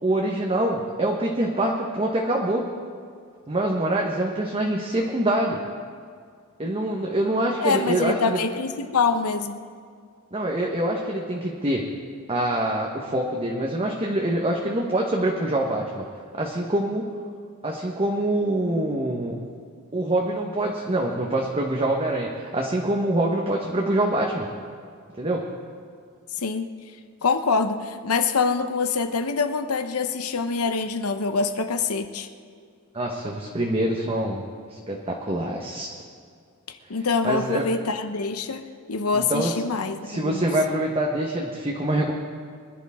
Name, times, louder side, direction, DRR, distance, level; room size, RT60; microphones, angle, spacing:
voice 1, 0.0-2.6 3.5-5.6 6.6-8.4 10.3-11.8 12.3-16.0 16.3-17.0 17.6-19.3 19.9-24.5 25.2-25.5 32.9-34.4 34.7-35.9 37.2-37.7 39.1-39.5 40.1-42.1, right 1 dB, 25° right, -1 dB, 1.1 m, -25 dB
voice 2, 7.6-9.6 26.3-26.7 27.2-32.3 36.7-40.5, left 4 dB, 80° left, 8 dB, 0.9 m, -25 dB
24.5 x 11.0 x 3.6 m, 2.1 s
head